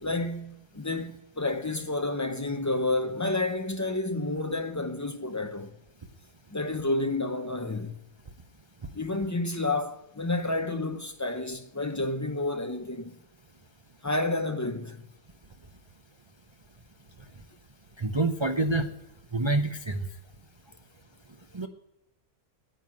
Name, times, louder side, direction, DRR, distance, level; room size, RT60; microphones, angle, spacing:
voice 1, 0.0-5.7 6.5-8.0 8.9-13.2 14.0-15.0, left 2 dB, 20° left, 0.4 m, -30 dB
voice 2, 18.0-18.9 19.3-20.0 21.5-21.7, right 2 dB, 40° right, 0.4 m, -26 dB
10.0 x 9.4 x 7.5 m
omnidirectional pair, 1.6 m